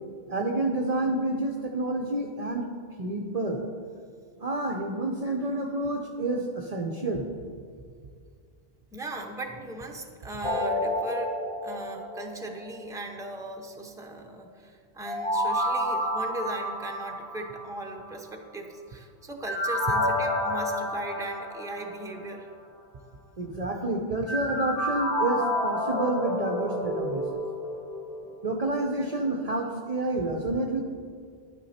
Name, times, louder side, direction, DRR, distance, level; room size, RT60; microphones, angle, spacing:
voice 1, 0.3-2.7 3.0-3.6 4.4-7.2 23.4-27.2 28.4-30.8, right 2 dB, 40° right, 2 dB, 0.7 m, -29 dB
voice 2, 8.9-11.4 11.6-22.5 28.2-28.3 28.9-29.1, right 2 dB, 5° right, 2 dB, 0.8 m, -38 dB
sound 1, 10.4-12.7 15.0-18.0 19.5-22.2 24.3-28.7 29.1-29.2, left 1 dB, 55° left, 1.6 m, -30 dB
11.0 x 9.5 x 4.3 m, 2.1 s
omnidirectional pair, 1.1 m